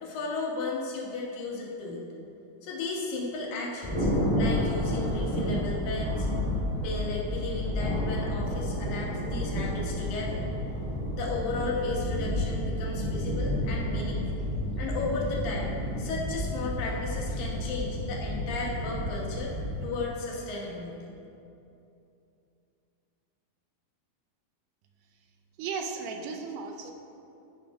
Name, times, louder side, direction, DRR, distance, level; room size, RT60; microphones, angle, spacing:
voice 1, 0.0-2.0 2.6-4.1 4.4-6.3 6.8-10.4 11.1-14.3 14.8-19.5 19.8-21.1, left 3 dB, 85° left, -3 dB, 3.1 m, -34 dB
Thunder, 3.8-19.8, equal, 15° right, 1.2 m, -30 dB
voice 2, 25.6-26.9, right 5 dB, 80° right, 4 dB, 2.2 m, -35 dB
13.0 x 5.4 x 4.8 m, 2.7 s
omnidirectional pair, 3.9 m